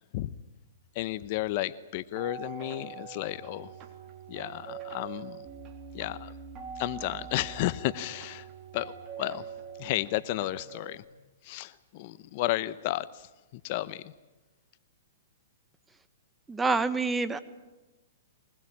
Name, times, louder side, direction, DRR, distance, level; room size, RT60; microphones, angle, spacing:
voice 1, 0.9-3.7 4.3-5.4 5.9-6.3 6.8-8.5 8.7-9.4 9.8-11.0 11.4-13.3 13.6-14.1, left 16 dB, 45° left, 16 dB, 0.8 m, -32 dB
sound 1, 2.2-11.0, right 7 dB, 30° right, 3.4 m, -44 dB
voice 2, 16.5-17.4, right 3 dB, 10° right, 12 dB, 1.2 m, -27 dB
23.0 x 20.5 x 9.8 m, 1.1 s
hypercardioid pair, 140°, 0 cm